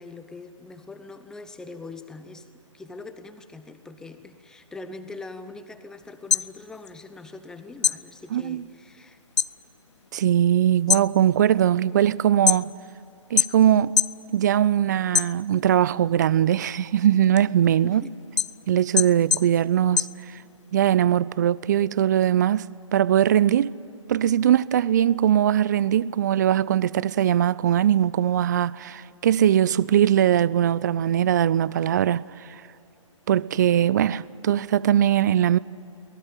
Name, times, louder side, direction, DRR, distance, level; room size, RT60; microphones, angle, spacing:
voice 1, 0.0-2.5 2.7-9.2 17.7-18.2, left 3 dB, 5° left, 0.8 m, -42 dB
sound 1, 6.1-7.5 7.8-9.6 9.9-10.4 10.8-12.9 13.4-14.2 14.6-15.8 16.2-20.8, left 7 dB, 60° left, 0.5 m, -25 dB
voice 2, 8.3-8.6 10.1-12.7 13.3-14.0 14.3-18.0 18.7-20.1 20.7-23.7 24.1-32.2 33.3-35.6, right 10 dB, 35° right, 0.5 m, -21 dB
22.0 x 19.0 x 9.0 m
figure-of-eight pair, 135°, 17 cm